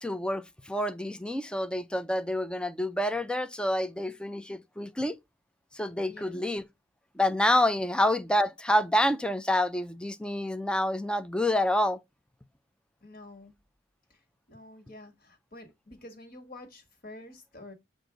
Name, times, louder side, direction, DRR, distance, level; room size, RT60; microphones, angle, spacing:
voice 1, 0.0-5.2 5.8-6.6 7.2-12.0, left 1 dB, 5° left, 0.4 m, -28 dB
voice 2, 6.0-6.4 7.8-7.9 13.0-13.6 14.1-14.2 14.5-17.7, left 2 dB, 50° left, 1.6 m, -48 dB
7.7 x 2.6 x 5.0 m
head